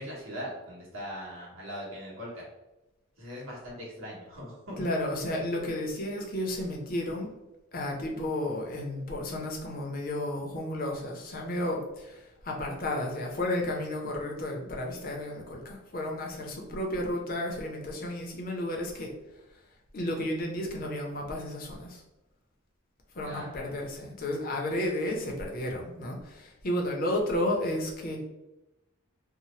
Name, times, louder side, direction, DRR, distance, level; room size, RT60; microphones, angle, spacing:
voice 1, 0.0-2.4 3.2-4.8 23.2-23.6, equal, 70° right, -5 dB, 1.2 m, -40 dB
voice 2, 4.8-7.3 7.7-19.1 19.9-22.0 23.1-28.2, left 1 dB, 40° left, 0 dB, 0.5 m, -32 dB
2.7 x 2.0 x 3.0 m, 0.97 s
head